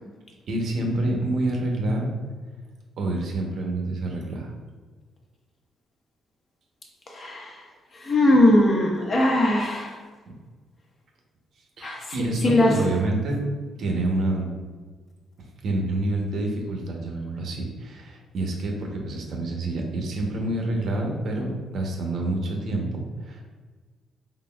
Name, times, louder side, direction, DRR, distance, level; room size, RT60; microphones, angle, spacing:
voice 1, 0.5-2.1 3.0-4.5 11.8-13.4 13.8-14.5 15.4-23.4, right 2 dB, 65° right, 1 dB, 0.8 m, -27 dB
voice 2, 7.1-7.6 7.9-10.0 11.8-12.1 12.4-12.7, left 1 dB, 45° left, 0 dB, 0.8 m, -20 dB
3.9 x 3.4 x 2.3 m, 1.4 s
cardioid pair, 90°, 0 cm